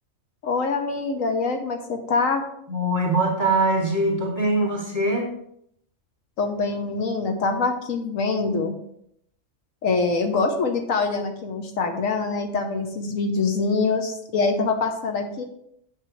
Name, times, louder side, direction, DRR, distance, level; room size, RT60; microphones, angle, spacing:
voice 1, 0.4-2.4 6.4-8.7 9.8-15.4, left 4 dB, 75° left, 5 dB, 1.3 m, -24 dB
voice 2, 2.7-5.3, right 2 dB, 15° right, -6 dB, 2.3 m, -22 dB
9.0 x 6.6 x 3.2 m, 0.72 s
omnidirectional pair, 1.4 m